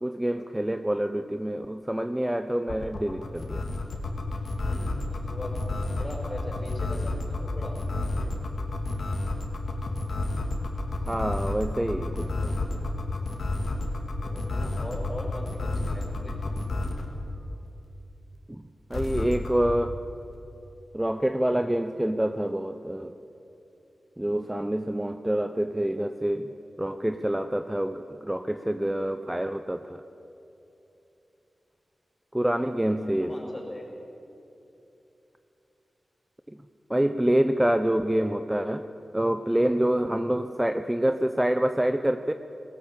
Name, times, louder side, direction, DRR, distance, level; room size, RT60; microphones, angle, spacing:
voice 1, 0.0-3.6 11.1-12.3 18.5-20.0 20.9-23.1 24.2-26.5 26.8-30.0 32.3-33.3 36.5-36.6 36.9-38.9 39.1-42.3, right 1 dB, 10° right, 8 dB, 0.6 m, -27 dB
sound 1, 2.7-17.1 18.9-19.5, left 2 dB, 75° left, 2.6 m, -30 dB
voice 2, 4.5-7.8 8.1-8.3 14.2-16.4 32.8-33.9, left 1 dB, 25° left, 0 dB, 5.5 m, -40 dB
19.5 x 18.0 x 8.4 m, 2.9 s
wide cardioid pair, 100°, 0 cm